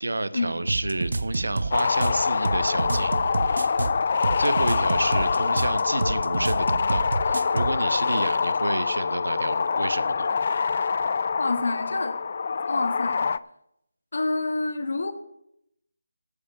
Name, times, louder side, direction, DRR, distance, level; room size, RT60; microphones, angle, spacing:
voice 1, 0.0-3.1 3.4-3.7 4.4-10.3, right 2 dB, 85° right, 1.1 m, -30 dB
sound 1, 0.7-7.8, right 3 dB, 60° right, 1.1 m, -28 dB
sound 2, 1.7-13.4, left 5 dB, 40° left, 0.4 m, -25 dB
voice 2, 11.4-12.2 12.7-13.3 14.1-15.1, left 3 dB, 65° left, 1.8 m, -27 dB
13.0 x 5.7 x 8.5 m
figure-of-eight pair, 165°, 0 cm